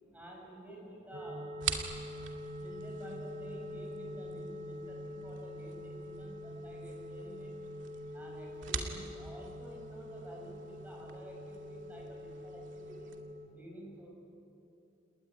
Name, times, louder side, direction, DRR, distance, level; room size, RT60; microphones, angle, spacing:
voice 1, 0.1-1.5 2.6-7.6 8.1-13.1 13.5-14.1, right 1 dB, 10° right, -2 dB, 7.0 m, -50 dB
sound 1, 1.1-13.5, equal, 35° right, 1.8 m, -45 dB
sound 2, 1.6-13.2, right 6 dB, 70° right, 2.5 m, -45 dB
29.5 x 20.0 x 9.8 m, 2.7 s
head